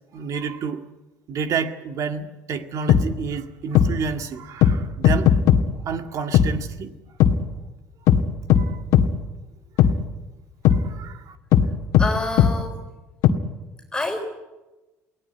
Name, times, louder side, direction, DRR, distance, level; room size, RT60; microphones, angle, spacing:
voice 1, 0.1-0.8 1.3-5.3 5.9-6.9 8.6-8.8 10.9-11.3, right 5 dB, 55° right, 7 dB, 2.0 m, -29 dB
sound 1, 2.9-3.0 3.7-3.9 4.6-4.7 5.0-5.6 6.3-6.5 7.2-7.3 8.1-8.2 8.5-8.6 8.9-9.1 9.8-9.9 10.6-10.8 11.5-11.7 11.9-12.1 12.4-12.5 13.2-13.3, left 10 dB, 70° left, 1.9 m, -15 dB
voice 2, 12.0-12.8 13.9-14.2, left 2 dB, 10° left, 1 dB, 4.1 m, -27 dB
23.5 x 17.5 x 9.4 m, 1.1 s
supercardioid pair, 85°, 7 cm